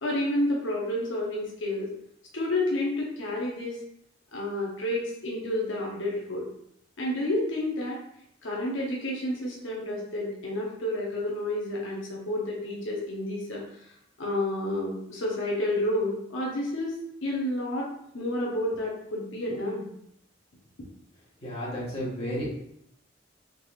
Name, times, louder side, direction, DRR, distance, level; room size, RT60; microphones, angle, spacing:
voice 1, 0.0-1.9 2.3-3.8 4.3-6.5 7.0-8.0 8.4-13.6 14.2-16.9 17.2-17.9 18.1-19.9, left 1 dB, 85° left, -3 dB, 0.8 m, -30 dB
voice 2, 21.4-22.5, equal, 30° left, -7 dB, 1.3 m, -32 dB
3.7 x 3.1 x 2.4 m, 0.73 s
head